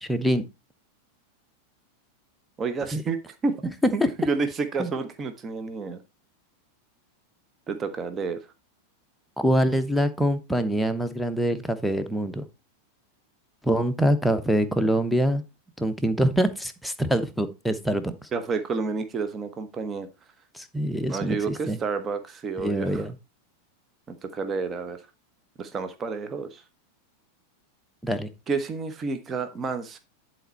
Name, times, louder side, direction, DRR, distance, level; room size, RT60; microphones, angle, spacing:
voice 1, 0.0-0.4 2.9-3.0 4.0-4.1 4.8-4.9 9.4-12.4 13.6-15.4 15.8-18.3 20.5-21.8 22.6-23.1 28.0-28.3, equal, ahead, 7 dB, 1.0 m, -24 dB
voice 2, 2.6-6.0 7.7-8.4 18.3-20.1 21.1-23.0 24.1-25.0 25.6-26.6 28.5-30.0, right 4 dB, 25° right, 9 dB, 1.1 m, -30 dB
10.5 x 4.4 x 4.4 m, 0.26 s
figure-of-eight pair, 90°, 0 cm